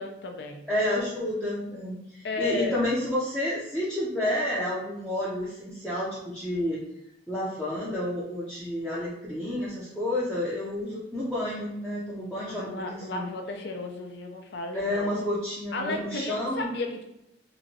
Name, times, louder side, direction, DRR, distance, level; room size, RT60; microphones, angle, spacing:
voice 1, 0.0-0.6 2.2-2.9 12.5-15.1 15.7-17.0, left 2 dB, 60° left, 3 dB, 0.5 m, -34 dB
voice 2, 0.7-6.8 7.3-13.3 14.7-16.7, left 1 dB, 5° left, -9 dB, 0.5 m, -30 dB
2.9 x 2.5 x 2.6 m, 0.82 s
head